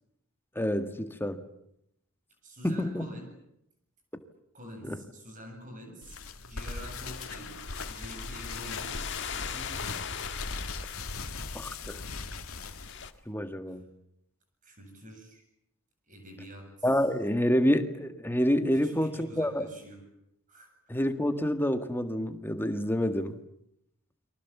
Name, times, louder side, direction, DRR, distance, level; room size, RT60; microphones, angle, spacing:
voice 1, 0.6-1.4 2.6-3.1 4.8-5.0 11.5-12.0 13.3-13.9 16.8-19.7 20.9-23.4, equal, 10° left, 8 dB, 1.8 m, -28 dB
voice 2, 2.4-3.3 4.5-6.2 6.5-7.6 7.9-10.1 14.6-15.4 16.1-16.9 18.7-20.0 20.5-20.7, equal, 35° right, 4 dB, 7.9 m, -47 dB
sound 1, 6.0-13.1, left 3 dB, 80° left, 2.3 m, -39 dB
sound 2, 6.6-13.1, left 8 dB, 55° left, 1.8 m, -41 dB
29.5 x 24.0 x 7.2 m, 0.77 s
head